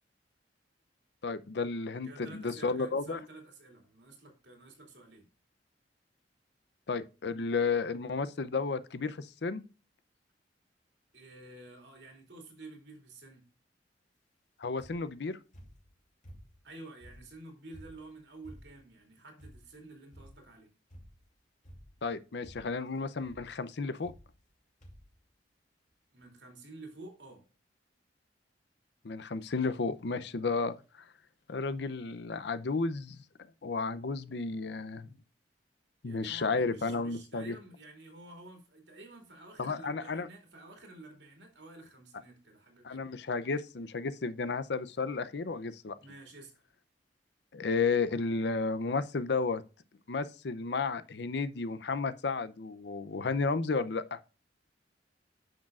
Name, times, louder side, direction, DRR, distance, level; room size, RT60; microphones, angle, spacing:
voice 1, 1.2-3.2 6.9-9.6 14.6-15.4 22.0-24.1 29.0-30.7 31.5-33.2 33.6-35.1 36.0-37.6 39.6-40.3 42.8-45.9 47.5-49.6 50.1-54.2, left 4 dB, 65° left, 0.6 m, -32 dB
voice 2, 2.0-5.2 11.1-13.4 16.6-20.7 26.1-27.4 36.0-43.0 46.0-46.5, right 2 dB, 75° right, 2.6 m, -51 dB
sound 1, 14.8-15.2 15.5-16.7 17.0-18.9 19.4-19.8 20.1-20.5 20.9-21.3 21.6-22.1 22.4-22.9 23.2-23.5 24.0-24.5 24.8-25.2 25.9-26.0 26.2-26.3, equal, 45° left, 2.8 m, -53 dB
10.0 x 6.3 x 2.4 m
head